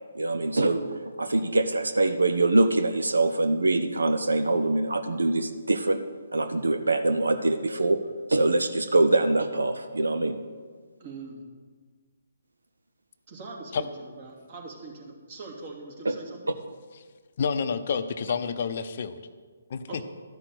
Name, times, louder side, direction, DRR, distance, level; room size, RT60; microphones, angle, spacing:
voice 1, 0.1-6.0 6.3-8.0 8.3-10.4 16.0-16.1, right 2 dB, 80° right, 8 dB, 0.8 m, -24 dB
voice 2, 11.0-11.4 13.3-16.5 19.9-20.0, right 3 dB, 40° right, 0 dB, 2.8 m, -42 dB
voice 3, 17.4-19.2 19.7-20.0, left 6 dB, 50° left, 10 dB, 0.7 m, -29 dB
12.5 x 6.0 x 8.0 m, 1.6 s
figure-of-eight pair, 140°, 0 cm